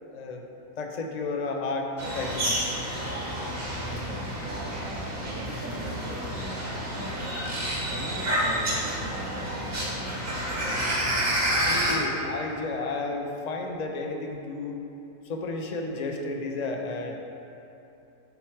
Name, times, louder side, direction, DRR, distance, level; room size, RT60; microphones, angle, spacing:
voice 1, 0.1-0.4 0.8-2.6 11.6-14.8 15.2-17.1, left 3 dB, 50° left, 2 dB, 0.5 m, -32 dB
sound 1, 2.0-12.0, equal, 45° right, 1.5 m, -29 dB
voice 2, 3.8-7.4 7.9-10.4, right 3 dB, 70° right, 4 dB, 1.0 m, -41 dB
8.9 x 4.6 x 4.6 m, 2.9 s
omnidirectional pair, 1.5 m